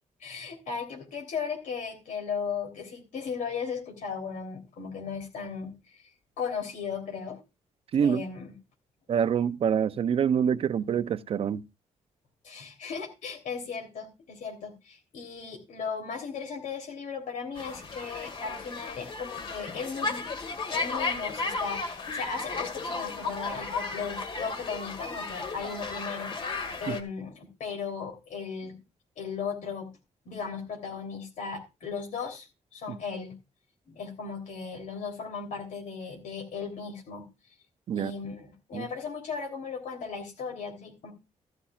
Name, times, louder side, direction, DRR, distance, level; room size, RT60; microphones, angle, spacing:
voice 1, 0.2-6.1 6.4-7.4 8.0-8.5 12.4-20.3 20.7-28.8 29.2-29.9 30.2-32.5 32.7-33.3 33.9-37.2 37.9-41.1, left 5 dB, 80° left, 3.2 m, -36 dB
voice 2, 7.9-8.2 9.1-11.6 26.9-27.0 32.9-33.0 37.9-38.1 38.7-38.9, right 8 dB, 45° right, 0.5 m, -26 dB
sound 1, 17.6-27.0, left 4 dB, 40° left, 1.6 m, -34 dB
14.5 x 11.5 x 2.4 m
wide cardioid pair, 170°, 13 cm